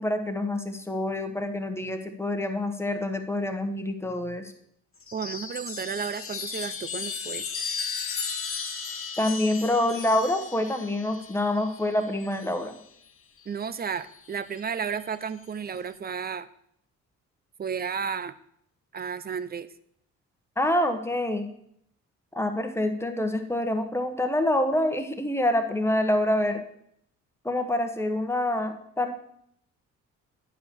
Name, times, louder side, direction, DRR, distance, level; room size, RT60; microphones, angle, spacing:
voice 1, 0.0-4.5 9.2-12.8 20.6-21.5 22.3-26.6 27.4-29.1, left 1 dB, 10° left, 6 dB, 1.2 m, -26 dB
Chime, 5.0-12.8 14.0-14.6, left 5 dB, 45° left, 1.4 m, -36 dB
voice 2, 5.1-7.5 13.5-16.5 17.6-18.3 18.9-19.7, right 6 dB, 30° right, 14 dB, 0.6 m, -33 dB
9.7 x 4.9 x 6.9 m, 0.72 s
cardioid pair, 90°, 30 cm